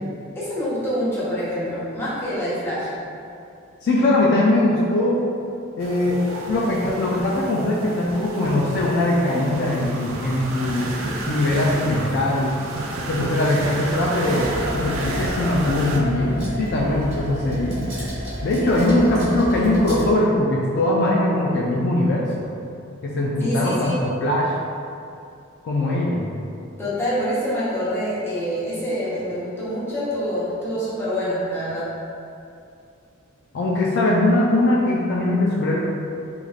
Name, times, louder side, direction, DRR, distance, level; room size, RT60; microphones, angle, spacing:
voice 1, 0.3-2.9 23.4-24.0 26.8-31.9, equal, 10° left, -11 dB, 0.8 m, -26 dB
voice 2, 3.8-5.2 5.8-10.9 11.3-12.6 13.1-17.8 18.4-22.5 23.0-24.5 25.6-26.3 33.5-35.8, left 1 dB, 55° left, -4 dB, 0.3 m, -21 dB
sound 1, 5.8-16.0, right 2 dB, 70° right, 0.3 m, -31 dB
sound 2, 14.4-20.1, equal, 35° right, 1.2 m, -31 dB
3.2 x 2.4 x 2.3 m, 2.5 s
head